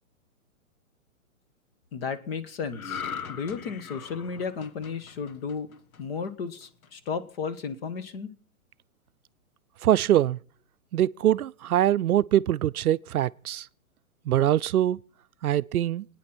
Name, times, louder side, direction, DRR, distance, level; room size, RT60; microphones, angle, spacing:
voice 1, 1.9-3.0 3.3-5.7 6.0-8.3, left 5 dB, 45° left, 1.5 m, -34 dB
sound 1, 2.7-6.2 6.6-6.9, left 7 dB, 75° left, 1.4 m, -39 dB
voice 2, 9.8-10.4 10.9-13.7 14.3-15.0 15.4-16.1, right 12 dB, 85° right, 0.7 m, -23 dB
28.0 x 9.6 x 4.4 m
hypercardioid pair, 155°, 43 cm